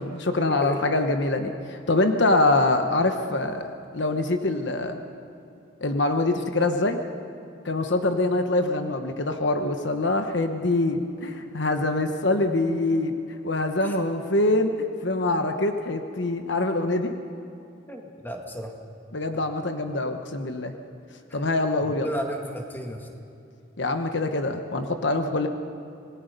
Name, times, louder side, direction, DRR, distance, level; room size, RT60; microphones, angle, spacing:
voice 1, 0.0-3.7 3.9-5.0 5.8-7.0 7.6-13.1 13.4-14.7 15.0-17.1 19.1-20.7 21.3-22.1 23.8-25.5, left 2 dB, 60° left, 6 dB, 1.1 m, -24 dB
voice 2, 17.9-18.7 22.0-23.0, equal, 10° left, 2 dB, 2.0 m, -33 dB
27.0 x 20.0 x 5.3 m, 2.7 s
head